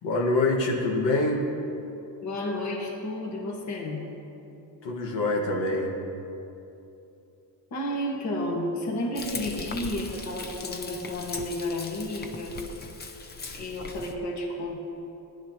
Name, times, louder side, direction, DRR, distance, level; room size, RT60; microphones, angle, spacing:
voice 1, 0.0-1.4 4.8-5.9, left 2 dB, 90° left, -1 dB, 1.8 m, -25 dB
voice 2, 2.2-4.1 7.7-12.6 13.6-14.8, left 1 dB, 40° left, -1 dB, 1.7 m, -32 dB
Frying (food), 9.2-14.2, left 3 dB, 25° left, 0.7 m, -39 dB
18.5 x 11.0 x 3.0 m, 2.8 s
cardioid pair, 145°, 42 cm